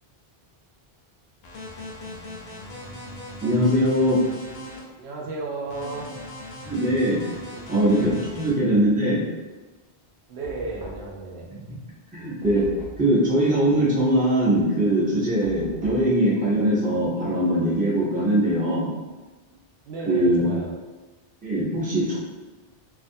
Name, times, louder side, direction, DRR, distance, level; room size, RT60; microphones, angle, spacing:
sound 1, 1.4-4.8 5.7-8.5, left 1 dB, 75° left, 0.8 m, -39 dB
voice 1, 3.4-4.2 6.7-7.2 7.7-9.2 11.5-11.6 12.1-12.6 13.0-18.9 20.1-20.4 21.4-22.2, right 1 dB, 10° right, -7 dB, 0.5 m, -21 dB
voice 2, 5.0-6.2 7.5-7.8 8.3-8.4 10.3-11.5 19.8-20.7, right 3 dB, 85° right, -1 dB, 0.8 m, -34 dB
Knock, 10.4-11.3 12.4-13.2 15.4-16.1, right 2 dB, 50° right, 0.8 m, -41 dB
2.5 x 2.3 x 2.6 m, 1.2 s
omnidirectional pair, 1.0 m